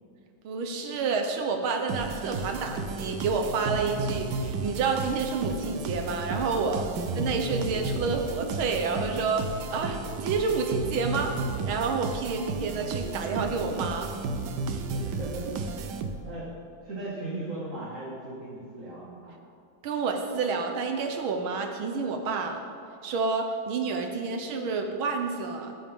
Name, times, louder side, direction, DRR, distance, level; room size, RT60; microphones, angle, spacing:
voice 1, 0.4-6.9 7.2-9.4 9.7-11.3 11.7-14.1 19.8-22.6 23.0-25.7, right 4 dB, 85° right, 4 dB, 1.9 m, -29 dB
sound 1, 1.9-16.5, right 3 dB, 65° right, 1.3 m, -33 dB
voice 2, 14.9-16.5 16.8-19.4, right 2 dB, 40° right, -7 dB, 2.5 m, -38 dB
20.0 x 10.5 x 3.7 m, 2.6 s
omnidirectional pair, 2.2 m